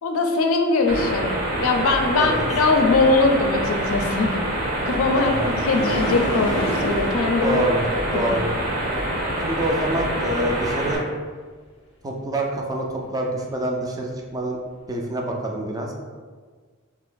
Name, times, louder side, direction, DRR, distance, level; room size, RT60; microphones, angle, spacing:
voice 1, 0.0-4.3 4.8-6.5 6.8-7.6 8.1-8.3, left 3 dB, 70° left, 4 dB, 0.4 m, -21 dB
sound 1, 0.9-11.0, right 1 dB, 45° right, 0.8 m, -26 dB
sound 2, 4.3-9.6 13.5-13.6 14.2-14.3, equal, 30° left, 0.7 m, -32 dB
voice 2, 5.1-5.5 7.4-8.6 9.4-11.0 12.0-12.9 13.1-14.6 14.9-15.9, right 1 dB, 15° right, 0 dB, 0.4 m, -26 dB
2.9 x 2.5 x 3.8 m, 1.5 s
head